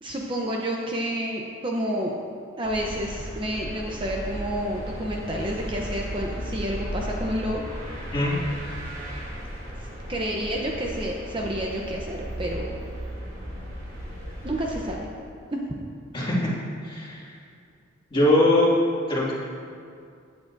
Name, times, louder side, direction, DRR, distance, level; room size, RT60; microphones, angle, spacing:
voice 1, 0.0-2.2 2.6-7.6 10.1-12.7 14.4-15.1 15.5-15.6, equal, 25° right, -1 dB, 0.7 m, -29 dB
sound 1, 2.6-14.9, equal, 40° right, 2.7 m, -36 dB
voice 2, 16.1-16.5 16.8-17.3 18.1-18.7 19.1-19.3, left 1 dB, 25° left, -6 dB, 2.1 m, -21 dB
15.5 x 8.8 x 2.6 m, 2.3 s
head